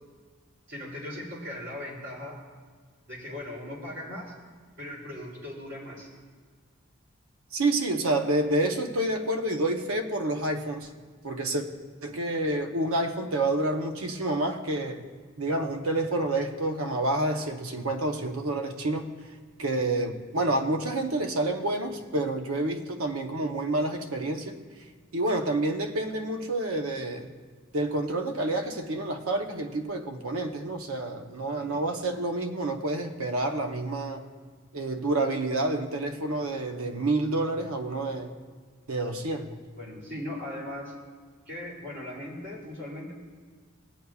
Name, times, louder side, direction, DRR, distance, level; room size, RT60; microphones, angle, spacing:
voice 1, 0.7-2.4 3.1-4.3 4.8-6.1 31.5-31.8 39.8-40.9 41.5-43.1, left 1 dB, 60° right, -5 dB, 2.9 m, -38 dB
voice 2, 7.5-10.9 11.2-11.6 12.0-15.0 15.4-19.1 19.6-24.6 25.1-27.3 27.7-34.3 34.7-38.3 38.9-39.5, right 2 dB, 80° right, 5 dB, 0.8 m, -28 dB
20.0 x 8.2 x 2.4 m, 1.5 s
head